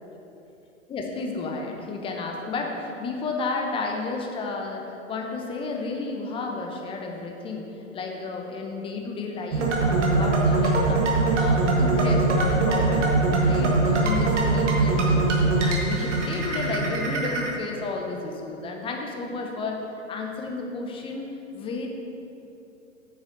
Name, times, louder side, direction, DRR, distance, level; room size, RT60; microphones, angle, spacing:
voice 1, 0.9-7.7 7.9-11.0 11.3-13.1 13.4-15.2 15.6-21.3 21.5-21.9, left 3 dB, 15° left, 1 dB, 0.7 m, -32 dB
sound 1, 9.5-17.5, right 3 dB, 60° right, 1.6 m, -22 dB
7.7 x 6.7 x 3.8 m, 2.9 s
figure-of-eight pair, 110°, 40 cm